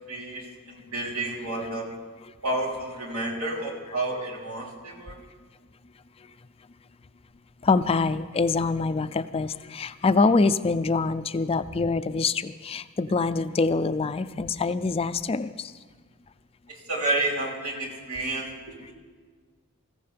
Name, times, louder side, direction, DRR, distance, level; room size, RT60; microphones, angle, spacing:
voice 1, 0.1-1.9 2.4-5.2 16.7-18.9, right 2 dB, 90° right, -3 dB, 3.4 m, -30 dB
voice 2, 7.6-15.7, left 4 dB, 25° left, 12 dB, 0.4 m, -25 dB
21.0 x 15.0 x 3.4 m, 1.5 s
head